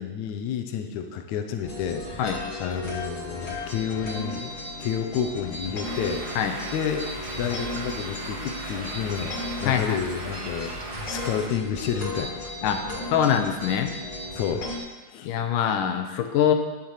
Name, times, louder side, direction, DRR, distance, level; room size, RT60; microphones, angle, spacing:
voice 1, 0.0-2.0 2.6-6.2 6.7-9.3 9.6-12.5 14.3-14.7 15.1-15.3, left 8 dB, 70° left, 5 dB, 2.2 m, -30 dB
sound 1, 1.6-14.8, left 1 dB, 40° left, 3.5 m, -35 dB
Stream, 5.8-11.5, right 2 dB, 80° right, 3.5 m, -38 dB
voice 2, 9.6-10.0 12.6-12.8 13.1-13.9 15.2-16.5, left 9 dB, 90° left, 5 dB, 2.4 m, -23 dB
11.0 x 7.7 x 6.6 m, 1.2 s
omnidirectional pair, 3.6 m